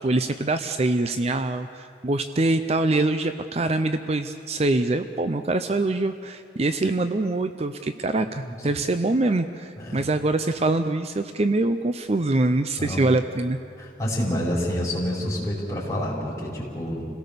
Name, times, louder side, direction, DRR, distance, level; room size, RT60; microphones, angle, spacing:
voice 1, 0.0-13.6, right 2 dB, 35° right, 9 dB, 0.5 m, -24 dB
voice 2, 9.8-10.1 12.8-13.1 13.8-17.0, equal, 15° left, -5 dB, 5.1 m, -28 dB
27.5 x 17.5 x 6.9 m, 2.5 s
head